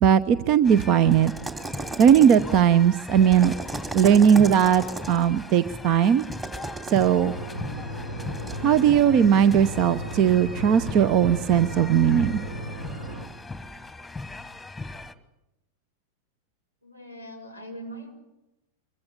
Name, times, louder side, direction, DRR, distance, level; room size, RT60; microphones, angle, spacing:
voice 1, 0.0-1.3 2.0-3.6 3.9-6.2 6.9-7.3 8.6-12.4, right 8 dB, 40° right, 16 dB, 0.8 m, -18 dB
sound 1, 0.6-15.1, left 3 dB, 5° left, 1.4 m, -39 dB
sound 2, 1.2-2.6 3.2-5.3 6.2-7.1 8.3-8.6, right 3 dB, 15° right, 2.8 m, -35 dB
sound 3, 7.2-13.3, equal, 60° right, 3.5 m, -35 dB
voice 2, 16.8-18.1, right 1 dB, 85° right, 5 dB, 5.1 m, -41 dB
24.5 x 23.5 x 7.0 m, 0.93 s
figure-of-eight pair, 90°, 0 cm